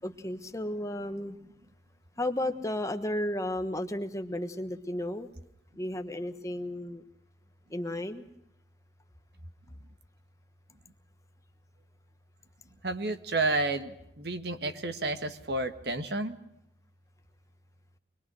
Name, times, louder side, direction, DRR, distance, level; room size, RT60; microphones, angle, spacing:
voice 1, 0.0-1.4 2.2-5.3 5.7-7.0 7.7-8.3, left 1 dB, 15° left, 8 dB, 1.2 m, -33 dB
voice 2, 12.8-16.4, right 2 dB, 60° right, 9 dB, 1.6 m, -31 dB
24.5 x 22.0 x 6.2 m, 0.79 s
head